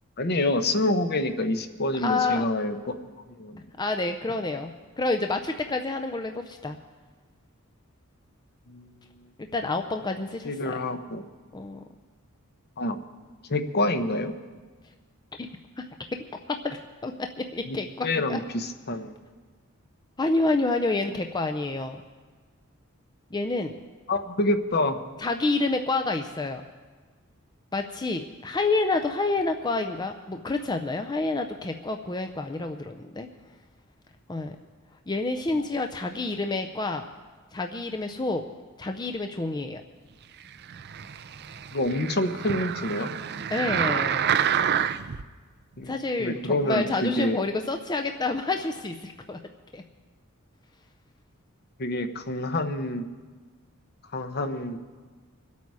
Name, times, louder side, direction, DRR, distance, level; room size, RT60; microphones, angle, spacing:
voice 1, 0.2-2.8 3.4-3.6 8.7-8.9 10.4-11.2 12.8-13.0 13.5-14.3 17.7-17.8 18.0-19.1 24.1-25.0 35.5-35.7 41.7-43.1 45.8-45.9 46.2-47.4 51.8-53.0 54.1-54.8, left 1 dB, 50° left, 8 dB, 0.9 m, -27 dB
voice 2, 2.0-2.5 3.8-6.8 9.4-10.7 11.5-11.8 15.4-15.5 15.8-15.9 16.5-17.1 17.4-18.4 20.2-22.0 23.3-23.7 25.2-26.6 27.7-33.3 34.3-34.5 35.1-37.0 37.5-38.4 38.8-39.8 43.5-44.3 45.8-49.4 49.7-49.8, left 3 dB, 20° left, 5 dB, 0.5 m, -28 dB
sound 1, 40.6-45.2 45.8-45.9, right 8 dB, 50° right, 0.5 m, -28 dB
24.5 x 8.4 x 4.8 m, 1.4 s
head